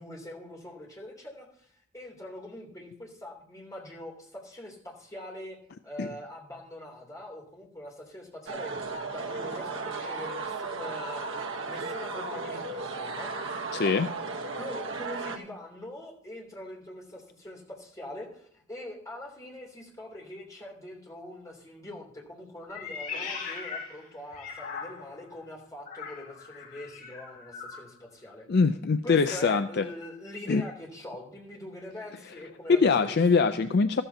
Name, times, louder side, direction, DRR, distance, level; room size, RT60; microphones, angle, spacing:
voice 1, 0.0-1.7 1.9-5.6 5.8-13.6 13.8-13.9 14.5-28.5 29.0-33.2, left 1 dB, 15° left, -2 dB, 2.9 m, -43 dB
sound 1, 8.5-15.4, right 3 dB, 60° right, 1.1 m, -35 dB
voice 2, 13.7-14.1 28.5-29.8 30.5-30.6 32.7-34.0, left 4 dB, 50° left, 10 dB, 0.4 m, -23 dB
Meow, 22.7-25.2 25.8-27.9, left 5 dB, 75° left, 5.8 m, -39 dB
13.5 x 13.5 x 2.8 m, 0.64 s
head